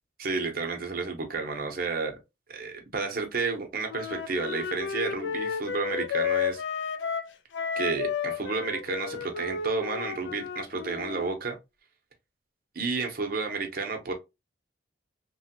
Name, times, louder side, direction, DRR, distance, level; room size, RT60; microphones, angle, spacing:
voice 1, 0.2-2.2 2.5-6.6 7.8-11.6 12.7-14.1, right 4 dB, 50° right, 0.7 m, -31 dB
Wind instrument woodwind instrument, 3.9-11.3, left 6 dB, 70° left, 0.4 m, -32 dB
3.1 x 2.2 x 2.8 m
head